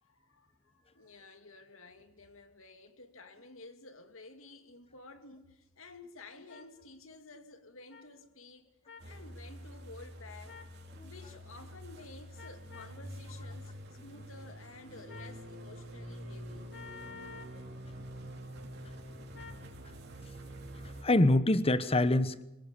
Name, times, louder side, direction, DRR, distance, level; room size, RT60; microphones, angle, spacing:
voice 1, 0.0-8.7 9.0-10.6 11.0-16.8, left 3 dB, 85° left, 2.5 m, -52 dB
sound 1, 6.5-6.6 7.9-8.0 8.9-9.1 10.5-10.7 12.4-13.0 15.1-15.4 16.7-17.6 19.3-19.6, left 6 dB, 60° left, 2.8 m, -50 dB
sound 2, 9.0-21.0, equal, 55° right, 4.0 m, -47 dB
voice 2, 20.8-22.4, left 1 dB, 30° left, 1.1 m, -25 dB
25.5 x 18.0 x 7.0 m
head